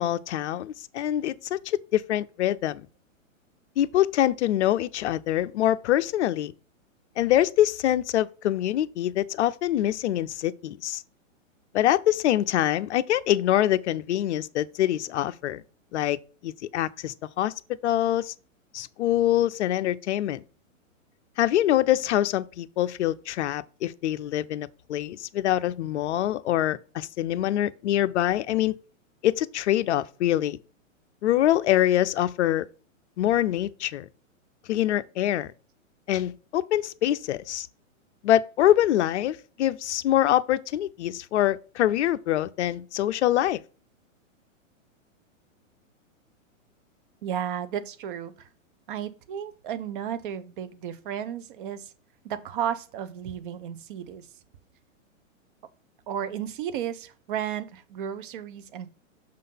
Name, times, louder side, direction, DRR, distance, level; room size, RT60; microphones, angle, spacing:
voice 1, 0.0-2.8 3.8-6.5 7.2-11.0 11.7-15.6 15.9-17.5 17.8-18.3 18.7-20.4 21.4-28.8 29.2-30.6 31.2-32.7 33.2-34.1 34.7-35.5 36.1-37.7 38.2-43.6, left 12 dB, 60° left, 0.6 m, -24 dB
voice 2, 47.2-48.5 48.9-51.9 52.2-54.3 56.1-58.9, right 9 dB, 40° right, 0.7 m, -33 dB
6.5 x 3.8 x 5.5 m
hypercardioid pair, 150°, 40 cm